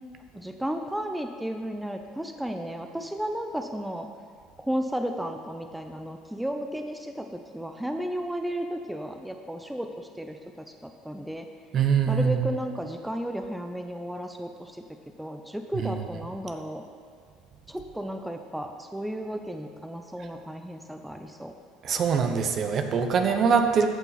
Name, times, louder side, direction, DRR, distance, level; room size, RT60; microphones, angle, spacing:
voice 1, 0.3-4.1 4.6-11.5 12.1-14.7 15.2-16.8 17.7-21.5, equal, 5° right, 5 dB, 0.7 m, -33 dB
voice 2, 11.7-12.5 15.8-15.9 21.8-23.9, right 6 dB, 45° right, 6 dB, 0.9 m, -23 dB
14.5 x 5.8 x 4.1 m, 2.3 s
hypercardioid pair, 70°, 0 cm